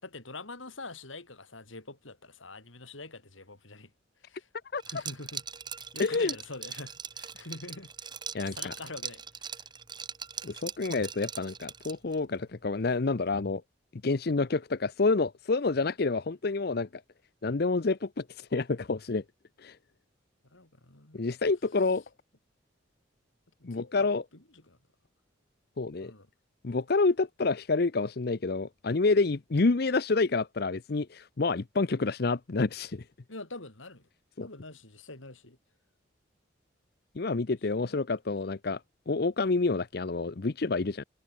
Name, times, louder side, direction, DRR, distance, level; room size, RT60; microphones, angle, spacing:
voice 1, 0.0-3.9 4.2-4.5 4.8-5.4 5.7-8.1 8.4-9.7 20.4-21.4 23.6-24.8 26.0-26.3 33.3-34.1 34.4-35.6 37.8-38.0, left 2 dB, 85° left, 4.2 m, -45 dB
Liquid, 4.8-12.2, right 7 dB, 25° right, 0.8 m, -41 dB
voice 2, 6.0-6.3 8.3-8.7 10.4-13.6 14.0-16.9 17.4-19.2 19.6-19.8 21.1-22.0 23.6-24.2 25.8-26.1 26.6-33.0 34.4-34.5 37.2-38.8 39.1-41.0, left 3 dB, 50° left, 0.7 m, -28 dB
head